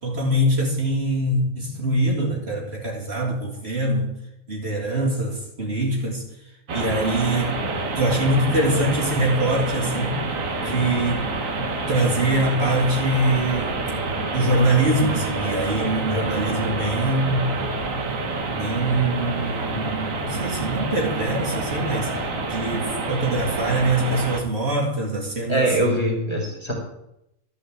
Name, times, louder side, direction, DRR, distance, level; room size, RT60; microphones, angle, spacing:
voice 1, 0.0-4.1 4.5-6.2 6.7-7.6 8.0-10.2 10.6-11.3 11.9-13.8 14.3-17.6 18.5-25.7, right 1 dB, 50° right, -2 dB, 2.4 m, -23 dB
sound 1, 6.7-24.4, right 3 dB, 70° right, 1.6 m, -27 dB
voice 2, 25.5-26.7, right 1 dB, 20° left, -1 dB, 2.7 m, -22 dB
11.5 x 5.0 x 7.9 m, 0.84 s
omnidirectional pair, 1.4 m